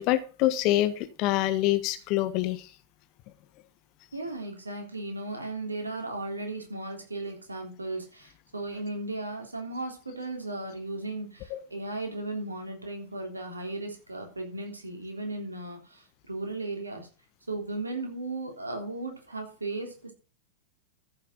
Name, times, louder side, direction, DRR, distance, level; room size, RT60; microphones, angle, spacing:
voice 1, 0.0-2.7 11.5-11.6, left 15 dB, 40° left, 12 dB, 1.3 m, -26 dB
voice 2, 4.1-17.1 17.5-20.1, right 2 dB, 80° right, 3 dB, 3.5 m, -36 dB
14.0 x 7.4 x 3.8 m, 0.35 s
figure-of-eight pair, 90°, 0 cm